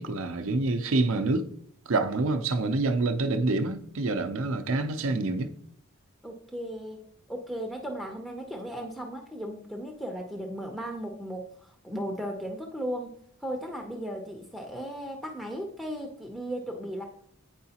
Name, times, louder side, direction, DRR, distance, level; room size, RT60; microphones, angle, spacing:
voice 1, 0.0-1.5 1.9-5.5, right 2 dB, 65° right, 0.5 m, -27 dB
voice 2, 6.2-13.2 13.4-17.0, equal, ahead, 0.6 m, -36 dB
8.8 x 4.7 x 2.8 m
head